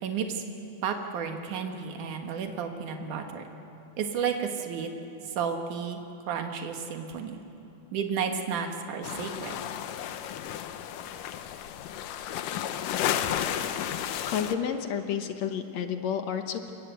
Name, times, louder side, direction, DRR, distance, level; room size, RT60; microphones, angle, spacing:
voice 1, 0.0-0.4 0.8-3.4 4.0-4.9 5.3-6.0 6.3-7.4 7.9-9.5, right 6 dB, 75° right, 4 dB, 3.1 m, -32 dB
sound 1, 9.0-14.5, left 10 dB, 80° left, 2.5 m, -32 dB
voice 2, 14.3-16.7, left 8 dB, 65° left, 7 dB, 2.1 m, -30 dB
27.5 x 23.0 x 8.2 m, 2.8 s
omnidirectional pair, 3.7 m